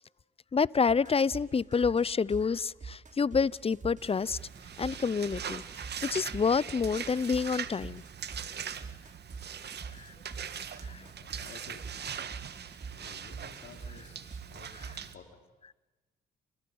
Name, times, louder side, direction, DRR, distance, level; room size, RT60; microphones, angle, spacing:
voice 1, 0.5-4.4 4.8-5.6 6.1-8.0 10.0-10.1 10.8-11.1, left 5 dB, 30° left, 0.7 m, -28 dB
sound 1, 0.9-15.0, right 5 dB, 40° right, 3.3 m, -45 dB
sound 2, 4.0-15.2, right 8 dB, 55° right, 1.7 m, -41 dB
voice 2, 11.0-11.9 12.8-15.3, left 6 dB, 65° left, 5.6 m, -53 dB
29.5 x 27.5 x 5.6 m
supercardioid pair, 55°, 20 cm